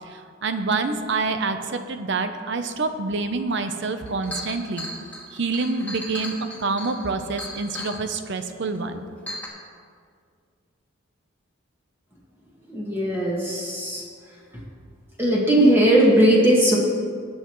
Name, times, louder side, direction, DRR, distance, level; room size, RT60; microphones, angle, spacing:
voice 1, 0.0-4.9 5.3-9.0, right 3 dB, 60° right, 8 dB, 0.8 m, -27 dB
Chink clink, 3.6-3.7 4.0-8.0 8.7-8.8 9.3-9.5, left 1 dB, 10° left, 2.0 m, -35 dB
voice 2, 12.7-14.0 15.2-16.8, right 1 dB, 10° right, -5 dB, 1.8 m, -18 dB
19.5 x 8.1 x 3.2 m, 2.1 s
head